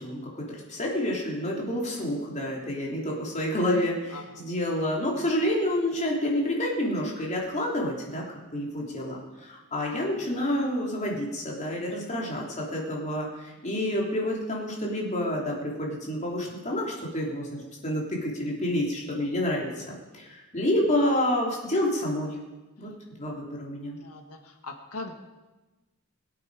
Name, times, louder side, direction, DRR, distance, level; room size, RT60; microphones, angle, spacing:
voice 1, 0.0-8.2 8.5-22.3 22.8-22.9 23.2-24.0, left 1 dB, 35° left, -2 dB, 3.3 m, -29 dB
voice 2, 24.0-24.4 24.6-25.1, left 3 dB, 80° left, 4 dB, 1.8 m, -39 dB
22.5 x 8.4 x 4.9 m, 1.1 s
head